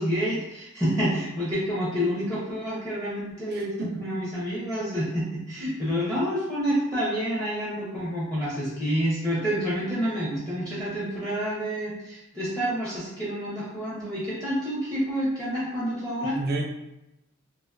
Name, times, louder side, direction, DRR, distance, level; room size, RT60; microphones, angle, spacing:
voice 1, 0.0-16.4, equal, 5° left, -8 dB, 0.5 m, -28 dB
voice 2, 3.5-4.0 16.2-16.7, right 2 dB, 45° right, 0 dB, 0.4 m, -31 dB
2.4 x 2.3 x 2.3 m, 0.91 s
head